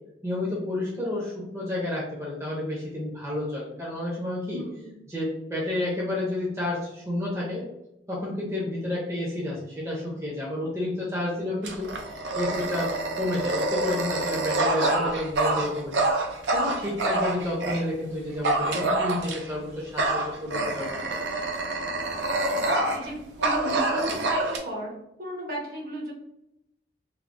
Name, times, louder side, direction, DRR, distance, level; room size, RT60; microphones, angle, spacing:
voice 1, 0.2-4.6 5.1-7.7 8.1-12.9 13.2-16.0 16.5-21.2, left 1 dB, 15° right, -4 dB, 0.6 m, -30 dB
voice 2, 4.5-5.0 22.5-24.9 25.2-26.1, right 1 dB, 50° right, -2 dB, 0.9 m, -36 dB
Dog, 11.6-17.8 18.4-19.6 20.0-23.1 23.4-24.6, right 2 dB, 75° right, 0.5 m, -27 dB
3.3 x 2.1 x 2.5 m, 0.86 s
head